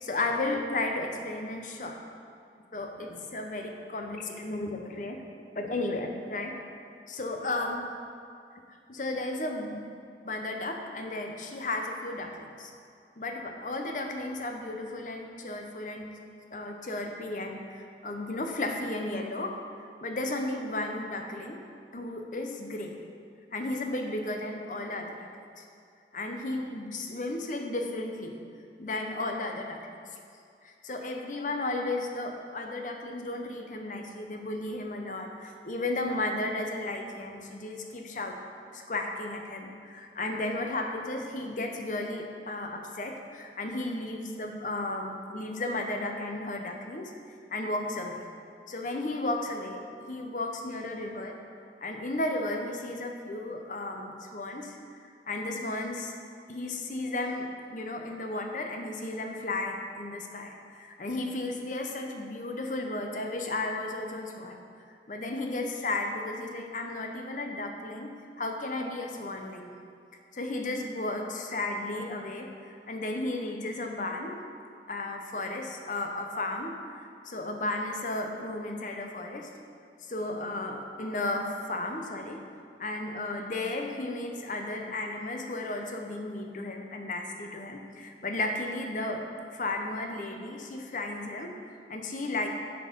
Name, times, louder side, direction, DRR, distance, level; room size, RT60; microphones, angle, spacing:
voice 1, 0.0-2.0 2.7-5.2 5.5-6.7 7.1-7.9 8.9-9.8 10.2-12.7 13.2-16.1 16.5-21.6 21.9-23.0 23.5-25.2 25.6-25.7 26.1-28.4 28.8-29.8 30.6-38.4 38.7-47.1 47.5-48.2 48.7-51.3 51.8-56.1 56.5-64.6 65.1-69.7 70.3-74.4 74.9-79.5 80.0-82.4 82.8-89.2 89.5-92.5, left 2 dB, 45° left, 3 dB, 0.7 m, -34 dB
10.0 x 4.6 x 5.2 m, 2.4 s
head